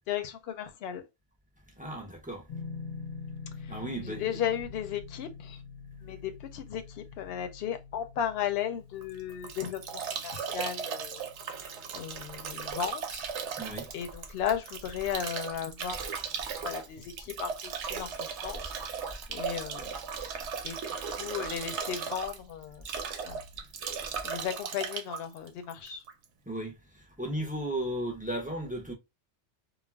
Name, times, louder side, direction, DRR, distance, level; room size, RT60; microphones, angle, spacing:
voice 1, 0.1-1.0 3.6-5.6 6.0-11.2 11.5-11.6 11.9-13.3 13.9-16.2 16.6-18.6 19.3-19.9 20.6-22.8 23.2-23.4 24.2-26.0, left 9 dB, 70° left, 0.8 m, -35 dB
voice 2, 1.8-2.4 3.7-4.4 13.6-13.9 24.2-24.3 26.5-28.9, right 1 dB, 15° right, 0.3 m, -35 dB
sound 1, 2.5-15.4, left 5 dB, 40° left, 0.6 m, -47 dB
Bathtub (filling or washing) / Drip / Trickle dribble, 9.0-26.2, right 6 dB, 85° right, 0.9 m, -37 dB
2.4 x 2.1 x 3.2 m
omnidirectional pair, 1.1 m